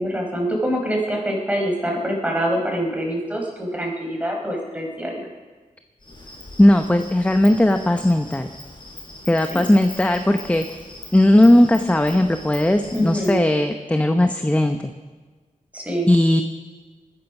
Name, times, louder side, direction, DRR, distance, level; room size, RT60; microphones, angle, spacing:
voice 1, 0.0-5.3 9.5-9.6 12.9-13.4 15.7-16.1, equal, 10° right, 0 dB, 4.7 m, -25 dB
Insect, 6.0-13.4, left 2 dB, 35° left, 4.1 m, -40 dB
voice 2, 6.6-8.5 9.3-10.8 11.1-14.9 16.1-16.4, left 1 dB, 10° left, 7 dB, 0.8 m, -17 dB
21.5 x 9.6 x 6.0 m, 1.4 s
cardioid pair, 70°, 14 cm